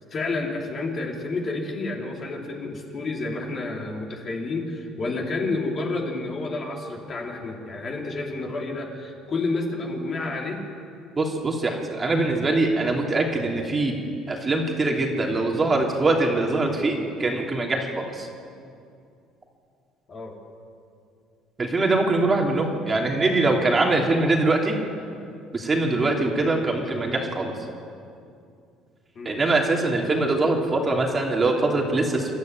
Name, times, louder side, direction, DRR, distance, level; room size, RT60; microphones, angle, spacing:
voice 1, 0.1-10.6 20.1-20.4 29.2-29.4, left 3 dB, 35° left, 0 dB, 3.8 m, -30 dB
voice 2, 11.2-13.9 14.3-18.3 21.6-24.8 25.5-27.5 29.2-32.3, right 2 dB, 20° right, 0 dB, 2.9 m, -23 dB
28.0 x 13.5 x 9.3 m, 2.5 s
cardioid pair, 135°, 0 cm